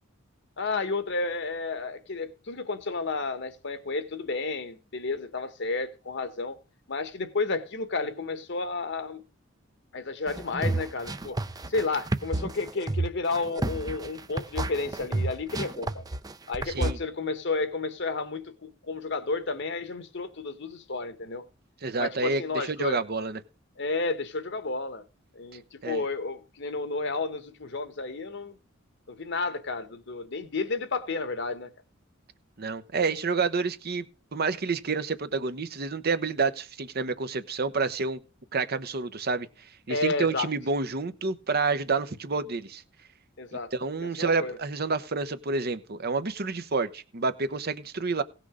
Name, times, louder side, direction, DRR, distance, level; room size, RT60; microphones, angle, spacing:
voice 1, 0.6-6.6 6.9-9.2 9.9-11.4 11.7-16.0 16.5-21.4 22.0-23.0 23.8-25.0 25.3-28.5 29.1-31.7 39.9-40.5 43.4-43.7 44.0-44.6, left 3 dB, 60° left, 1.1 m, -31 dB
sound 1, 10.3-16.9, right 2 dB, 20° right, 0.5 m, -30 dB
voice 2, 16.7-17.0 21.8-23.4 25.8-26.0 32.6-34.0 34.3-38.2 38.5-42.8 43.7-48.2, right 4 dB, 50° right, 0.8 m, -29 dB
17.0 x 6.1 x 4.9 m
head